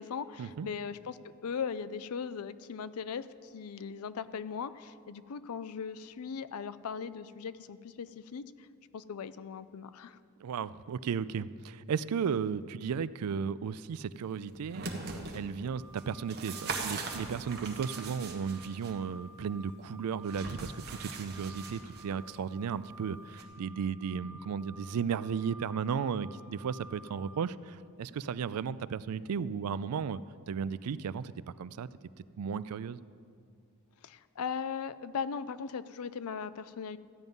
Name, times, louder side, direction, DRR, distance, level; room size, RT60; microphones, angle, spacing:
voice 1, 0.0-8.7 8.9-10.2 34.0-37.0, left 6 dB, 75° left, 15 dB, 0.5 m, -39 dB
voice 2, 10.4-30.2 30.5-31.3 31.6-31.9 32.4-33.0, right 6 dB, 90° right, 17 dB, 0.4 m, -35 dB
sound 1, 14.5-15.4 16.0-18.9 20.3-22.0 23.4-23.5, right 4 dB, 50° right, 1.3 m, -40 dB
sound 2, 15.7-27.3, right 2 dB, 35° left, 2.0 m, -53 dB
14.5 x 9.3 x 5.4 m, 2.3 s
head